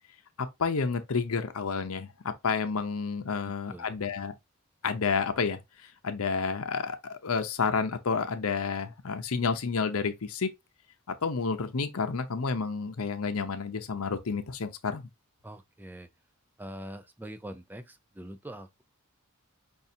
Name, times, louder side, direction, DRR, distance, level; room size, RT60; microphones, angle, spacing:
voice 1, 0.4-4.3 4.8-10.5 11.1-15.0, left 5 dB, 80° left, 0.7 m, -30 dB
voice 2, 3.4-4.0 15.4-16.1 16.6-18.8, right 1 dB, 10° right, 0.4 m, -44 dB
5.4 x 2.4 x 2.7 m
head